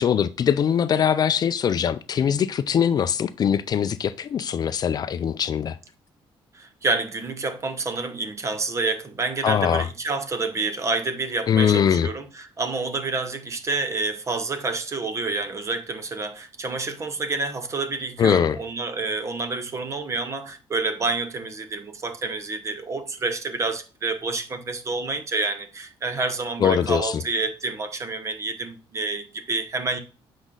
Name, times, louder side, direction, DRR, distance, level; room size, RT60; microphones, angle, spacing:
voice 1, 0.0-5.8 9.4-9.9 11.5-12.1 18.2-18.6 26.6-27.2, left 8 dB, 45° left, 0.5 m, -22 dB
voice 2, 6.5-30.0, right 3 dB, 30° right, 1.1 m, -28 dB
8.1 x 5.2 x 3.8 m
cardioid pair, 130°, 10 cm